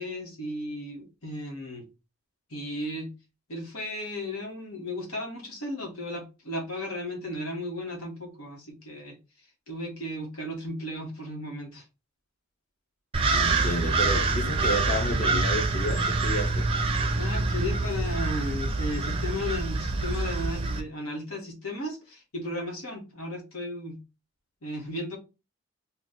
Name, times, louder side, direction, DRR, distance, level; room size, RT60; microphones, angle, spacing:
voice 1, 0.0-1.9 2.5-3.1 3.5-11.9 17.2-24.0 24.6-25.2, left 1 dB, 90° left, 1.3 m, -35 dB
sound 1, 13.1-20.8, right 3 dB, 25° right, 0.4 m, -26 dB
voice 2, 13.3-16.7, left 1 dB, 35° left, 0.7 m, -31 dB
Acoustic guitar, 14.6-17.9, right 7 dB, 65° left, 1.3 m, -48 dB
2.9 x 2.3 x 3.8 m
head